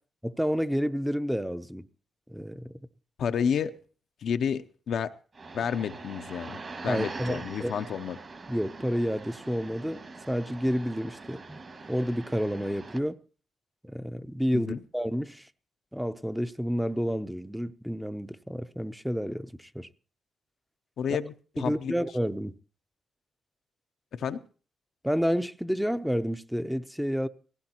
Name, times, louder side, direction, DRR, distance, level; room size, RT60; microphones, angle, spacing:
voice 1, 0.2-1.9 2.3-2.7 6.9-7.7 8.5-11.6 11.9-13.2 13.8-15.5 15.9-19.9 21.6-22.6 25.0-27.3, equal, ahead, 0.6 m, -30 dB
voice 2, 3.2-3.8 4.2-5.1 5.5-8.2 14.5-14.8 21.0-22.0 24.1-24.4, left 7 dB, 75° left, 0.6 m, -30 dB
sound 1, 5.3-13.0, right 3 dB, 45° right, 1.9 m, -43 dB
17.5 x 16.0 x 2.9 m
cardioid pair, 65°, 0 cm